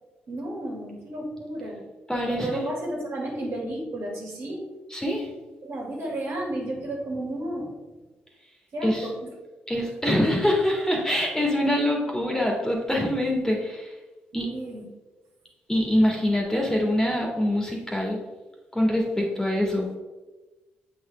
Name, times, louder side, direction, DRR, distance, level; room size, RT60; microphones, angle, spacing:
voice 1, 0.3-1.8 2.3-4.6 5.6-7.7 8.7-9.3 14.3-14.8, right 1 dB, 55° right, -3 dB, 2.0 m, -32 dB
voice 2, 2.1-2.6 4.9-5.3 8.8-9.1 9.7-13.9 14.3-14.5 15.7-18.2 18.7-19.9, left 1 dB, 10° left, -1 dB, 1.9 m, -24 dB
7.6 x 4.3 x 3.3 m, 1.2 s
hypercardioid pair, 45°, 5 cm